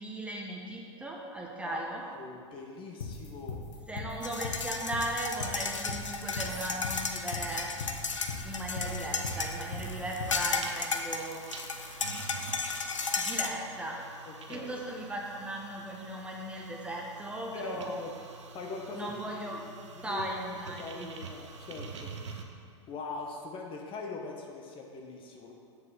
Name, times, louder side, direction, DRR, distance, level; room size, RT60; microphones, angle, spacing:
voice 1, 0.0-2.0 3.9-7.7 8.4-11.4 13.2-14.0 14.5-18.0 18.9-21.1, right 1 dB, 5° right, -1 dB, 1.1 m, -37 dB
voice 2, 1.6-3.6 14.3-14.8 17.5-18.1 18.5-19.6 19.9-20.3 20.8-22.1 22.9-25.5, left 4 dB, 35° left, 1 dB, 1.2 m, -42 dB
sound 1, 3.0-10.5, left 5 dB, 70° left, 1.1 m, -39 dB
sound 2, 4.2-13.5, left 4 dB, 85° left, 0.6 m, -35 dB
sound 3, 6.5-22.4, right 5 dB, 70° right, 0.9 m, -46 dB
7.0 x 6.6 x 5.4 m, 2.3 s
figure-of-eight pair, 90°, 16 cm